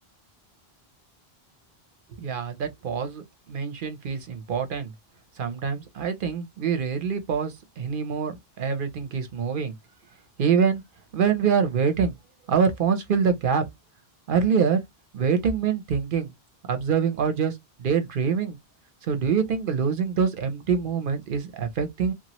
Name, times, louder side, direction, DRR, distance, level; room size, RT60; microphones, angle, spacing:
voice 1, 2.2-4.9 5.4-9.7 10.4-10.8 11.1-12.2 12.5-13.6 14.3-14.8 15.1-16.3 16.7-18.6 19.0-22.1, right 6 dB, 60° right, 0.8 m, -25 dB
2.9 x 2.4 x 2.9 m
omnidirectional pair, 1.0 m